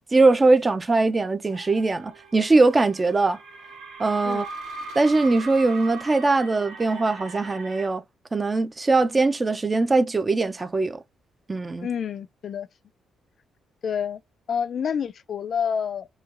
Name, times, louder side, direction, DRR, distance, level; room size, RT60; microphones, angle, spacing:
voice 1, 0.1-3.4 4.0-4.5 5.0-8.0 8.3-11.0 11.5-11.9, right 3 dB, 25° right, 0.4 m, -21 dB
sound 1, 1.5-7.9, right 4 dB, 85° right, 1.2 m, -40 dB
voice 2, 11.8-12.7 13.8-14.2 14.5-16.1, left 7 dB, 55° left, 0.3 m, -28 dB
3.0 x 2.2 x 2.4 m
cardioid pair, 90°, 0 cm